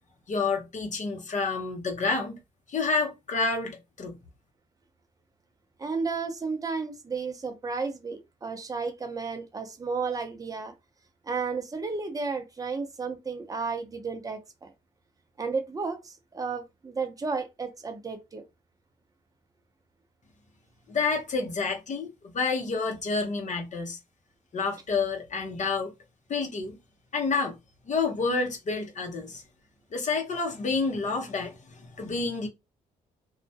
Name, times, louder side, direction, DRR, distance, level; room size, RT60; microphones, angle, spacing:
voice 1, 0.3-2.4 2.7-4.2 20.9-24.0 24.5-25.9 26.3-26.7 27.1-27.6 27.9-29.4 29.9-32.5, left 4 dB, 50° left, 0.8 m, -29 dB
voice 2, 5.8-10.7 11.2-14.7 15.4-18.4, right 4 dB, 20° right, 0.7 m, -33 dB
2.3 x 2.1 x 2.7 m
supercardioid pair, 65°, 16 cm